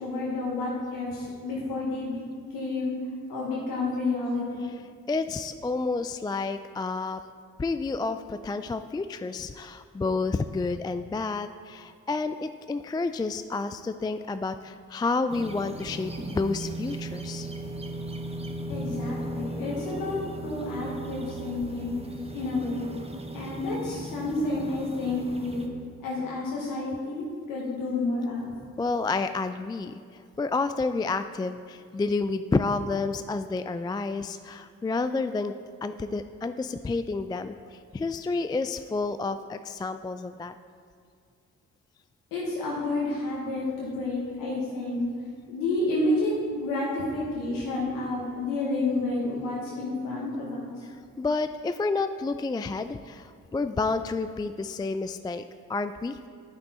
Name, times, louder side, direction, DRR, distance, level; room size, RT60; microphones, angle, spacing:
voice 1, 0.0-2.2 2.5-2.9 3.3-4.7 18.7-22.0 22.3-22.9 23.3-25.6 26.0-28.5 42.3-45.0 45.5-50.7, left 2 dB, 90° left, -5 dB, 1.2 m, -30 dB
voice 2, 5.1-7.2 7.6-17.5 28.8-35.5 35.8-40.5 51.2-55.4 55.7-56.2, left 3 dB, 15° left, 10 dB, 0.3 m, -30 dB
sound 1, 15.3-25.7, right 2 dB, 20° right, 1.0 m, -37 dB
8.8 x 6.0 x 4.2 m, 2.2 s
supercardioid pair, 40°, 33 cm